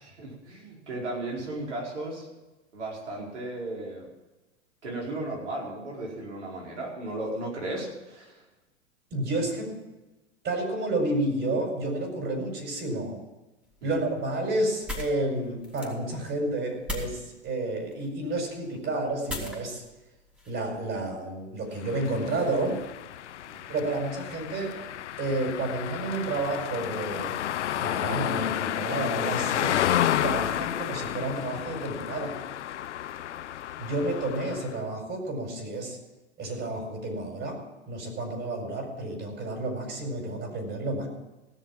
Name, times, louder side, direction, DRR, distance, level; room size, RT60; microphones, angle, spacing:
voice 1, 0.0-2.3 2.7-4.0 4.8-8.4 13.8-14.0 23.5-23.6, right 2 dB, 85° right, -3 dB, 4.7 m, -35 dB
voice 2, 9.1-9.7 10.4-13.2 13.8-19.8 20.5-22.7 23.7-24.8 25.2-27.4 27.8-29.8 30.2-32.4 33.8-36.0 36.4-37.6 37.9-41.1, right 2 dB, 35° right, 2 dB, 4.9 m, -30 dB
sound 1, 13.6-21.1, left 1 dB, 5° right, 3.2 m, -41 dB
sound 2, 21.8-34.8, left 11 dB, 90° left, 0.5 m, -31 dB
16.5 x 6.7 x 7.2 m, 1.1 s
hypercardioid pair, 100°, 34 cm